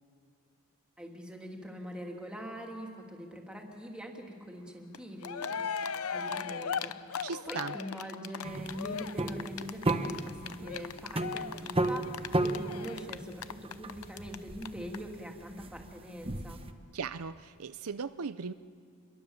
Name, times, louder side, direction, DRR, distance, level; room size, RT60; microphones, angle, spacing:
voice 1, 1.0-5.7 6.1-16.6, equal, 5° right, 0 dB, 2.7 m, -43 dB
Cheering, 4.9-5.0 5.2-14.4 14.6-14.7 14.9-15.0, left 6 dB, 70° left, 0.8 m, -37 dB
voice 2, 7.2-7.8 16.9-18.5, right 5 dB, 70° right, 13 dB, 0.6 m, -38 dB
sound 1, 8.4-16.7, right 2 dB, 25° right, 1.1 m, -34 dB
28.0 x 22.5 x 7.2 m, 2.2 s
head